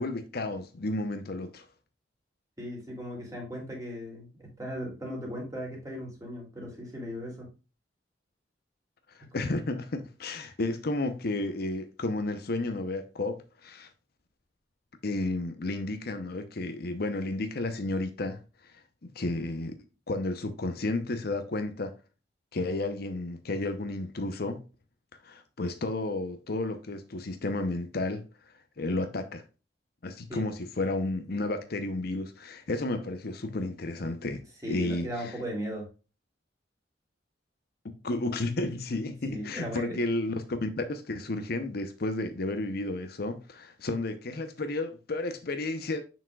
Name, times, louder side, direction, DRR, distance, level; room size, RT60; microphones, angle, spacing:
voice 1, 0.0-1.7 9.3-13.9 15.0-18.4 19.1-19.8 20.1-21.9 22.5-24.6 25.2-28.2 28.8-29.4 30.0-35.4 37.8-46.0, left 2 dB, 55° left, 0.7 m, -32 dB
voice 2, 2.6-7.5 9.2-9.4 30.3-30.5 34.6-35.9 39.3-40.0, equal, 20° right, 2.7 m, -37 dB
7.1 x 6.0 x 2.3 m
head